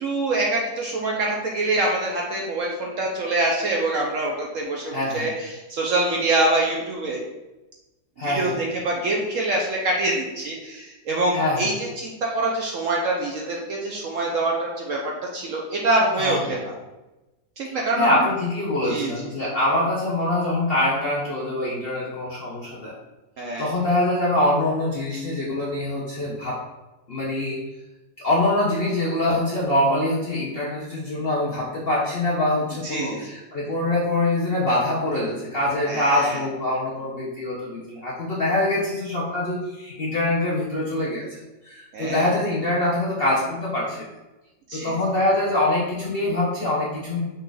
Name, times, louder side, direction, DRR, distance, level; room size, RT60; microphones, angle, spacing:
voice 1, 0.0-7.2 8.2-16.7 17.6-18.2 18.9-19.1 23.4-23.7 32.8-33.3 35.9-36.4 41.9-42.3 44.7-45.0, right 2 dB, 65° right, -1 dB, 0.8 m, -25 dB
voice 2, 4.9-5.3 8.2-8.5 11.3-11.7 16.2-16.6 18.0-22.9 23.6-26.6 27.1-27.6 28.2-41.3 41.6-44.0 44.7-47.2, left 1 dB, 55° left, -6 dB, 0.7 m, -24 dB
5.5 x 2.4 x 3.8 m, 1.0 s
omnidirectional pair, 1.8 m